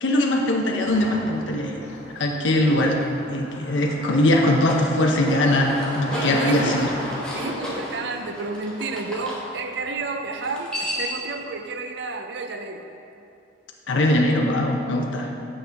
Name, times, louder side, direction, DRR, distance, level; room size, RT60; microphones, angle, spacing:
voice 1, 0.0-1.8 2.1-3.0 3.3-6.9 13.9-15.3, left 1 dB, 90° left, 1 dB, 0.7 m, -21 dB
Car passing by, 0.8-10.4, left 1 dB, 70° left, 1.5 m, -37 dB
sound 1, 4.5-9.4 10.4-11.3, equal, 5° left, 1.0 m, -33 dB
voice 2, 6.1-6.8 7.3-12.9, right 3 dB, 65° right, 6 dB, 0.5 m, -31 dB
8.8 x 5.3 x 3.4 m, 2.6 s
head